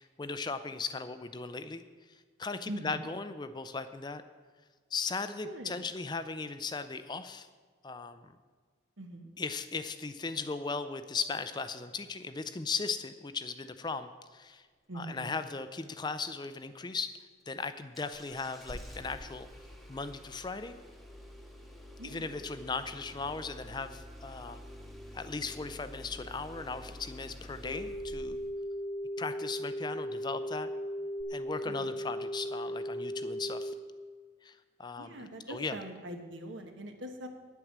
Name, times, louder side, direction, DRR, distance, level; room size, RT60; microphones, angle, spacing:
voice 1, 0.0-1.8 2.1-4.2 4.9-7.5 7.8-8.3 9.4-14.7 14.9-17.1 17.5-19.5 19.9-20.8 22.0-24.6 25.1-28.4 29.2-30.7 31.3-33.7 34.4-35.8, left 4 dB, 25° left, 11 dB, 0.4 m, -37 dB
voice 2, 2.7-3.1 5.4-5.7 9.0-9.3 14.9-15.4 15.8-16.0 22.0-22.3 31.7-31.9 35.0-37.3, right 1 dB, 80° right, 5 dB, 1.3 m, -43 dB
Engine starting, 17.9-28.6 31.2-31.3, left 1 dB, ahead, 0.9 m, -48 dB
sound 1, 27.6-33.7, equal, 55° left, 0.8 m, -37 dB
9.8 x 8.0 x 7.3 m, 1.5 s
head